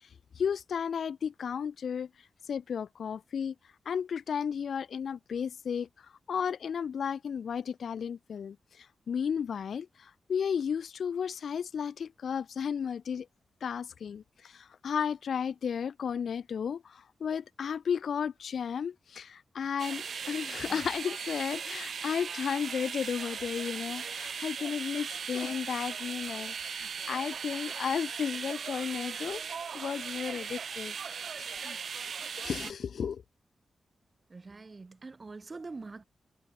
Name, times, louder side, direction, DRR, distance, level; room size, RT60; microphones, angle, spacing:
voice 1, 0.4-2.1 2.5-3.5 3.9-5.9 6.3-13.3 13.6-29.4 29.7-30.9 31.4-31.8 32.4-33.2, left 7 dB, 75° left, 0.4 m, -34 dB
sound 1, 19.8-32.7, right 6 dB, 65° right, 0.9 m, -38 dB
voice 2, 34.3-36.0, right 3 dB, 30° right, 0.5 m, -44 dB
wide cardioid pair, 135°, 0 cm